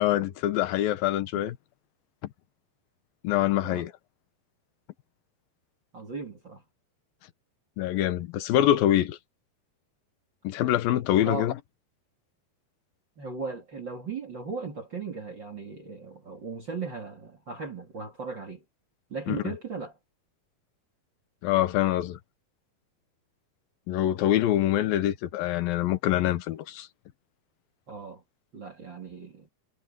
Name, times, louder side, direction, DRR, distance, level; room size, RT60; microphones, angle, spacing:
voice 1, 0.0-1.6 3.2-3.9 7.8-9.2 10.4-11.5 19.3-19.5 21.4-22.2 23.9-26.9, left 13 dB, 70° left, 2.8 m, -25 dB
voice 2, 5.9-6.6 11.2-11.5 13.2-18.6 19.1-20.0 27.9-28.2 28.5-29.5, right 4 dB, 35° right, 2.5 m, -37 dB
omnidirectional pair, 4.6 m